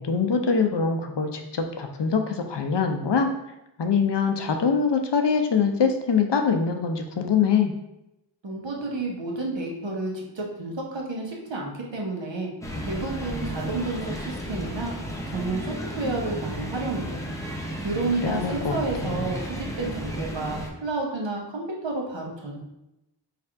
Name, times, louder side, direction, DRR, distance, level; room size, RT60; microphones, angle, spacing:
voice 1, 0.0-3.3 3.8-7.7 18.2-18.8 19.0-19.3, left 5 dB, 70° left, 5 dB, 0.6 m, -23 dB
voice 2, 8.4-12.5 12.8-14.9 15.3-17.2 17.5-22.6, right 2 dB, 80° right, -1 dB, 1.0 m, -31 dB
sound 1, 12.6-20.7, equal, 5° left, 0.7 m, -33 dB
3.4 x 2.4 x 4.4 m, 0.90 s
wide cardioid pair, 50°, 44 cm